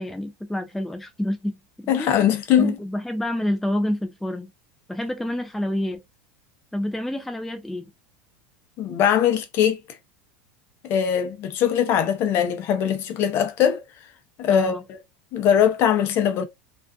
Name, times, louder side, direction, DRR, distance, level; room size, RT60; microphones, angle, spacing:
voice 1, 0.0-1.5 2.0-2.1 2.6-4.5 4.9-6.0 6.7-7.9 14.5-14.8, left 1 dB, 5° left, 0.3 m, -28 dB
voice 2, 1.9-2.8 8.8-9.8 10.8-13.8 14.4-14.8 15.3-16.4, left 9 dB, 45° left, 0.6 m, -21 dB
2.4 x 2.3 x 2.3 m
supercardioid pair, 115°, 5 cm